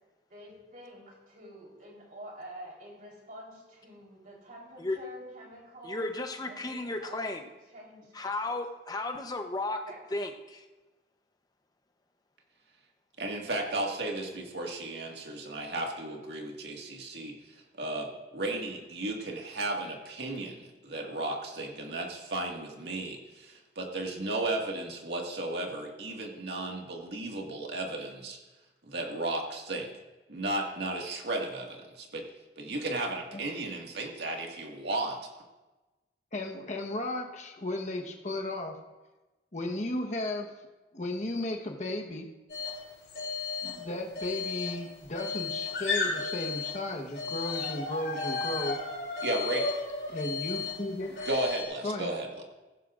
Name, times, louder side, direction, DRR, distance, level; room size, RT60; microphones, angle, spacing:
voice 1, 0.3-7.3 7.7-8.0 8.5-8.6 9.8-10.1, right 1 dB, 50° right, -2 dB, 3.9 m, -48 dB
voice 2, 5.8-7.4 8.2-9.8 10.1-10.6, left 2 dB, 20° left, 5 dB, 0.8 m, -34 dB
voice 3, 13.2-28.4 28.9-29.9 30.3-32.3 32.6-35.2 49.2-49.7 51.3-52.4, right 2 dB, 70° right, 1 dB, 1.9 m, -34 dB
voice 4, 36.3-38.8 39.5-40.5 40.9-42.3 43.6-48.8 50.1-51.2 51.8-52.1, left 1 dB, 40° left, 2 dB, 1.2 m, -35 dB
sound 1, 42.5-42.8 43.1-43.8 44.1-46.8 47.1-51.6, left 4 dB, 65° left, 3.5 m, -34 dB
17.0 x 15.0 x 2.5 m, 1.1 s
head